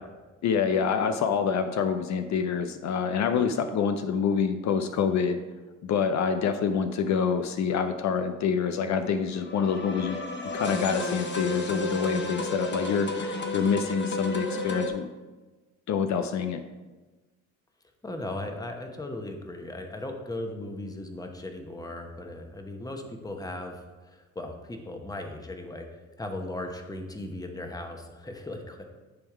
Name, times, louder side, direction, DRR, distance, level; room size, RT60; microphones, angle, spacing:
voice 1, 0.4-5.4 5.8-10.2 10.5-15.1 15.9-16.6, left 6 dB, 65° left, 8 dB, 0.6 m, -26 dB
sound 1, 9.3-14.9, left 2 dB, 35° left, 1.1 m, -32 dB
voice 2, 18.0-23.8 24.1-25.9 26.2-28.8, left 1 dB, 10° left, 4 dB, 1.0 m, -37 dB
10.5 x 3.5 x 4.6 m, 1.2 s
cardioid pair, 90°, 30 cm